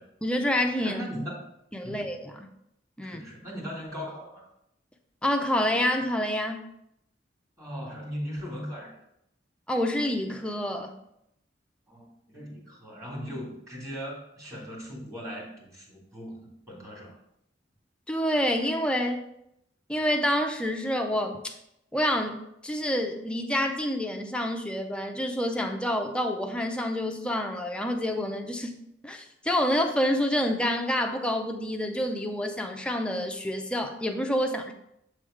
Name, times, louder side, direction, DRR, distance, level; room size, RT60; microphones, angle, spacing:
voice 1, 0.2-1.0 1.7-2.5 3.0-3.2 5.2-6.6 9.7-11.0 18.1-19.2 19.9-21.6 21.9-28.7 29.0-34.7, equal, 5° left, 4 dB, 0.5 m, -28 dB
voice 2, 0.8-1.4 1.8-2.2 3.0-4.5 7.6-9.0 11.9-17.2, equal, 20° right, -2 dB, 1.9 m, -38 dB
7.7 x 3.3 x 4.9 m, 0.79 s
head